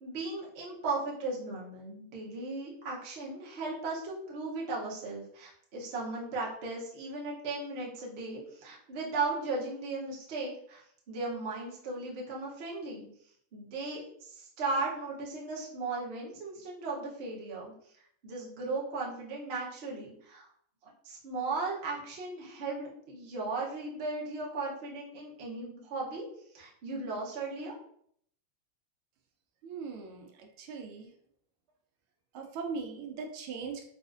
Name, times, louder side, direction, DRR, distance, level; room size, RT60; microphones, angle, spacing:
voice 1, 0.0-10.8 11.1-13.1 13.5-17.7 18.2-20.5 21.0-26.3 26.5-27.7, right 3 dB, 65° right, -4 dB, 0.6 m, -36 dB
voice 2, 29.6-31.1 32.3-33.9, right 5 dB, 80° right, 3 dB, 1.4 m, -40 dB
4.2 x 2.4 x 2.4 m, 0.66 s
omnidirectional pair, 2.3 m